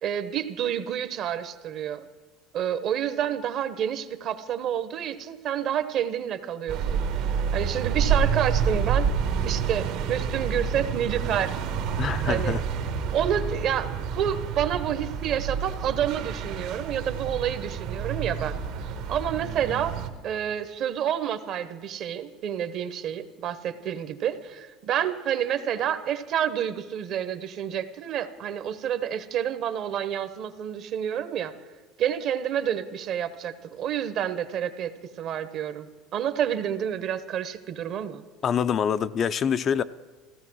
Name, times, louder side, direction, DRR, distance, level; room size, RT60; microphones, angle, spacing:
voice 1, 0.0-2.1 2.5-9.1 9.4-11.6 12.3-12.6 13.1-18.6 19.1-20.0 20.2-31.5 32.0-34.9 35.2-38.2, right 9 dB, 50° right, 0.9 m, -29 dB
sound 1, 6.7-20.1, right 6 dB, 70° right, 1.2 m, -28 dB
voice 2, 12.0-12.6 38.4-39.8, left 7 dB, 35° left, 0.4 m, -25 dB
15.5 x 13.5 x 6.2 m
cardioid pair, 135°, 0 cm